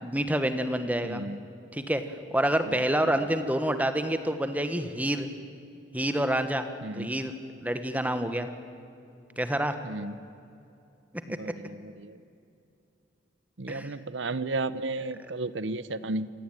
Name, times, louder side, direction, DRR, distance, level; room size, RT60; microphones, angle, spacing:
voice 1, 0.0-1.2 1.7-5.3 5.9-6.7 7.0-7.3 7.6-8.5 9.4-9.8 11.4-11.5 13.7-13.9, right 1 dB, 10° right, 9 dB, 1.4 m, -28 dB
voice 2, 1.0-1.4 2.7-2.8 6.8-7.1 9.8-10.2 11.3-12.2 13.6-16.3, right 2 dB, 75° right, 15 dB, 0.9 m, -33 dB
27.5 x 17.5 x 9.1 m, 2.6 s
head